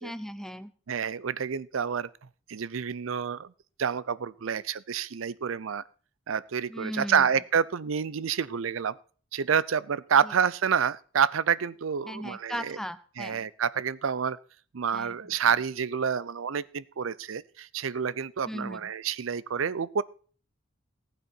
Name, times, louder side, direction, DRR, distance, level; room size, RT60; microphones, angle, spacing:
voice 1, 0.0-0.7 6.7-7.3 10.2-10.3 12.0-13.5 14.9-15.4 18.5-18.9, equal, 5° left, 12 dB, 0.7 m, -38 dB
voice 2, 0.9-2.1 2.5-3.5 3.8-5.8 6.3-9.0 9.3-12.8 13.2-14.4 14.7-20.0, right 7 dB, 80° right, 20 dB, 0.5 m, -28 dB
19.0 x 8.3 x 4.5 m, 0.43 s
head